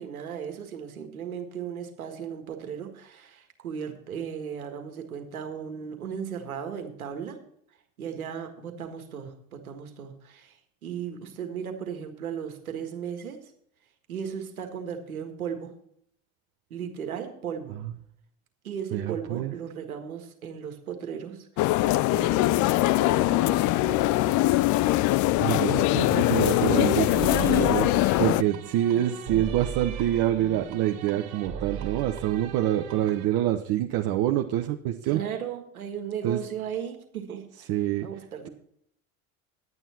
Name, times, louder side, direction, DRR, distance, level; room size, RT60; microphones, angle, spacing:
voice 1, 0.0-7.4 8.0-10.6 10.8-13.4 14.1-15.7 16.7-17.8 18.6-21.7 22.1-24.6 35.0-37.4 38.0-38.5, right 8 dB, 90° right, 5 dB, 1.7 m, -36 dB
voice 2, 18.9-19.5 25.4-27.9 28.2-35.2 36.2-36.4 37.7-38.1, right 12 dB, 55° right, 3 dB, 1.0 m, -26 dB
sound 1, 21.6-28.4, left 17 dB, 45° left, 0.5 m, -22 dB
sound 2, 26.1-33.3, right 8 dB, 70° right, 2.0 m, -38 dB
11.0 x 9.1 x 4.3 m, 0.67 s
hypercardioid pair, 70°, 42 cm